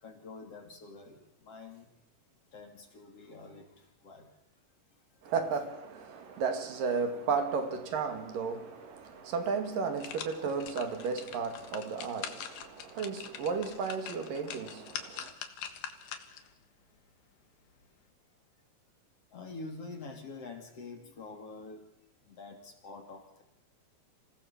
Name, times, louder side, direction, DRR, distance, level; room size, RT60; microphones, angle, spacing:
voice 1, 0.0-1.9 2.5-3.7 4.0-4.3 19.3-21.8 22.3-23.4, left 3 dB, 45° left, 3.5 m, -46 dB
voice 2, 5.2-15.3, right 5 dB, 65° right, 3.6 m, -34 dB
sound 1, 9.1-9.2 9.7-16.5 17.0-17.1, left 8 dB, 85° left, 3.6 m, -44 dB
26.5 x 17.0 x 7.1 m
omnidirectional pair, 4.2 m